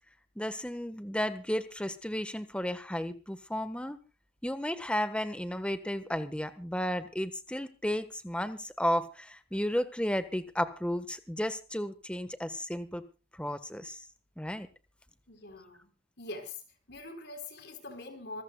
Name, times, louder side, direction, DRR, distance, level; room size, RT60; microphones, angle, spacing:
voice 1, 0.4-4.0 4.4-13.1 13.3-14.0 14.4-14.7, equal, 5° left, 11 dB, 1.3 m, -33 dB
voice 2, 15.3-15.9 16.2-16.6 16.9-18.4, left 2 dB, 60° left, 6 dB, 4.1 m, -43 dB
26.5 x 14.5 x 2.3 m, 0.34 s
head